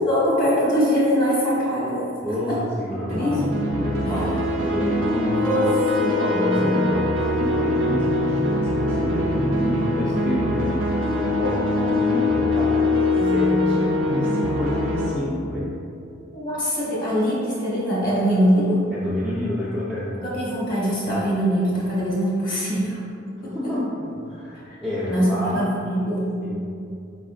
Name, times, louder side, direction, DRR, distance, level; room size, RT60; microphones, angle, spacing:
voice 1, 0.0-2.1 2.5-2.6 3.1-3.4 4.1-4.2 5.2-5.7 5.9-6.2 16.3-18.8 20.2-23.0 23.4-23.7 24.5-24.8 25.1-26.3, equal, 50° left, -7 dB, 1.1 m, -22 dB
voice 2, 2.2-5.4 6.2-10.8 11.1-12.8 13.2-15.8 18.9-20.2 23.4-25.7 26.4-26.7, left 1 dB, 5° left, -10 dB, 0.4 m, -29 dB
sound 1, 3.1-15.1, left 1 dB, 85° right, 0.6 m, -22 dB
4.9 x 3.6 x 2.4 m, 2.5 s
head